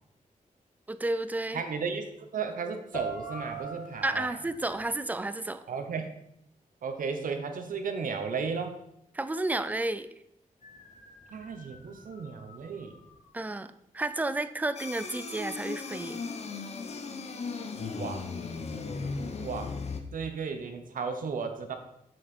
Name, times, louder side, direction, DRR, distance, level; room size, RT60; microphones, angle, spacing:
voice 1, 0.9-1.6 4.0-5.6 9.1-10.1 13.3-16.2, right 2 dB, 10° right, 13 dB, 0.4 m, -31 dB
voice 2, 1.5-4.3 5.7-6.1 6.8-8.8 11.3-13.0 17.9-18.2 19.4-19.7 20.1-21.8, right 5 dB, 80° right, 7 dB, 1.1 m, -34 dB
sound 1, 2.9-5.9, right 4 dB, 20° left, 2.2 m, -42 dB
sound 2, 3.0-4.9 10.6-13.3, left 3 dB, 65° left, 2.1 m, -51 dB
sound 3, 14.8-20.0, left 4 dB, 50° left, 0.9 m, -37 dB
7.6 x 7.4 x 4.3 m, 0.78 s
wide cardioid pair, 150°, 14 cm